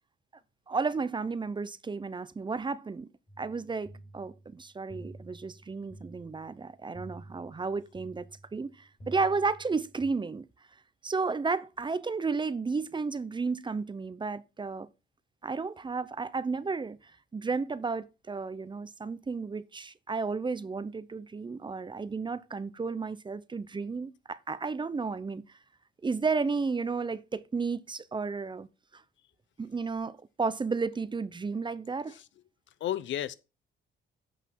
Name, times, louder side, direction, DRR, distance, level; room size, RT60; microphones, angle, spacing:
voice 1, 0.7-3.1 3.4-10.5 11.0-14.9 15.4-25.6 26.0-28.7 28.9-29.0 29.6-32.2, right 4 dB, 25° right, 0.6 m, -33 dB
sound 1, 3.3-10.1, right 1 dB, 30° left, 4.4 m, -50 dB
voice 2, 32.8-33.3, left 11 dB, 70° left, 0.7 m, -33 dB
8.2 x 5.7 x 4.6 m
cardioid pair, 90°, 20 cm